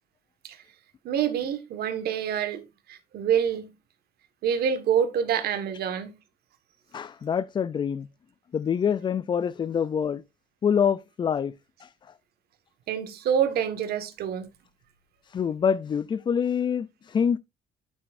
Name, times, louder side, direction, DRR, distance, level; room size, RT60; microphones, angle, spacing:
voice 1, 1.0-3.7 4.4-6.1 12.9-14.5, right 8 dB, 70° right, 1.5 m, -27 dB
voice 2, 6.9-8.1 8.5-10.2 10.6-11.5 11.8-11.9 15.2-17.4, left 7 dB, 25° left, 0.3 m, -26 dB
8.9 x 8.4 x 2.5 m
cardioid pair, 110°, 17 cm